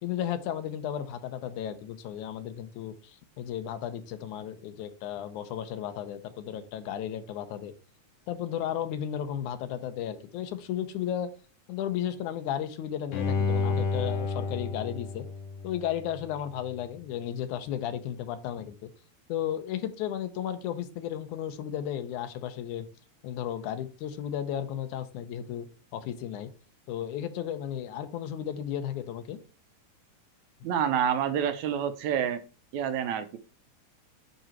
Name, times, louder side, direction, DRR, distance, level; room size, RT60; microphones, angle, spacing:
voice 1, 0.0-7.7 8.3-11.3 11.7-15.3 15.6-18.9 19.3-22.9 23.2-25.7 25.9-26.5 26.9-29.4, left 10 dB, 90° left, 8 dB, 2.3 m, -34 dB
Bowed string instrument, 13.1-16.2 16.7-16.8, left 4 dB, 55° left, 1.9 m, -30 dB
voice 2, 30.6-32.4 32.7-33.4, right 8 dB, 80° right, 10 dB, 2.2 m, -28 dB
9.3 x 3.9 x 4.5 m, 0.34 s
omnidirectional pair, 3.4 m